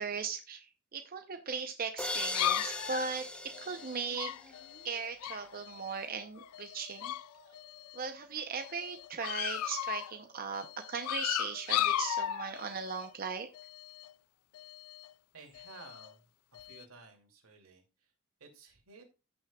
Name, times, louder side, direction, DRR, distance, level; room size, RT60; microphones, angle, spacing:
voice 1, 0.0-4.3 4.8-7.1 7.9-13.5, right 5 dB, 45° right, 6 dB, 0.7 m, -38 dB
sound 1, 2.0-4.8, left 2 dB, 5° left, 0.8 m, -39 dB
sound 2, 2.2-6.1 6.4-7.3 7.5-8.1 8.5-10.1 10.5-13.1 13.5-14.1 14.5-15.1 15.6-16.1 16.6-16.8, left 12 dB, 90° left, 0.3 m, -37 dB
Musical instrument, 3.4-11.5, left 3 dB, 45° left, 6.2 m, -61 dB
voice 2, 15.3-17.8 18.4-19.0, right 3 dB, 85° right, 3 dB, 2.5 m, -54 dB
15.0 x 6.2 x 2.3 m, 0.29 s
head